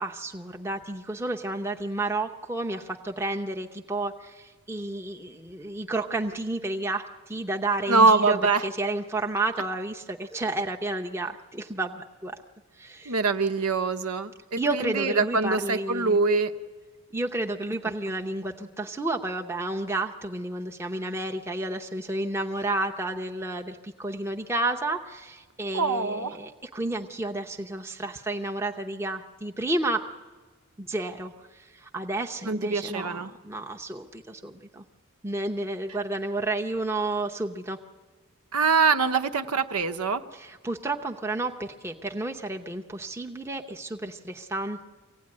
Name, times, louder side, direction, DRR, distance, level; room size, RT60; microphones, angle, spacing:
voice 1, 0.0-12.4 12.7-13.2 14.6-16.2 17.1-30.1 30.8-34.8 35.2-37.8 40.3-44.8, right 2 dB, 10° right, 2 dB, 0.7 m, -31 dB
voice 2, 7.9-8.6 13.1-16.5 25.7-26.3 32.5-33.3 38.5-40.2, right 4 dB, 90° right, 10 dB, 0.9 m, -23 dB
23.5 x 16.5 x 9.7 m, 1.4 s
head